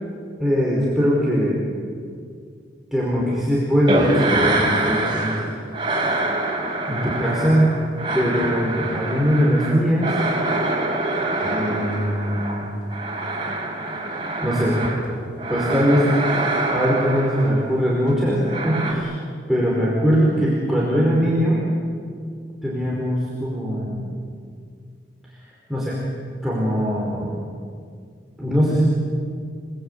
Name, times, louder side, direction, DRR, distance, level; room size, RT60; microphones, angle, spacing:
voice 1, 0.4-1.6 2.9-5.6 6.8-7.7 8.1-10.1 11.4-12.6 14.4-14.8 15.5-16.1 16.7-19.1 19.5-21.6 22.6-24.0 25.7-26.0 26.4-27.4 28.4-28.8, equal, ahead, -6 dB, 4.8 m, -21 dB
sound 1, 3.9-5.5 5.7-15.0 15.4-17.7 18.4-18.9, right 2 dB, 25° right, 5.1 m, -25 dB
29.5 x 20.5 x 8.9 m, 2.2 s
head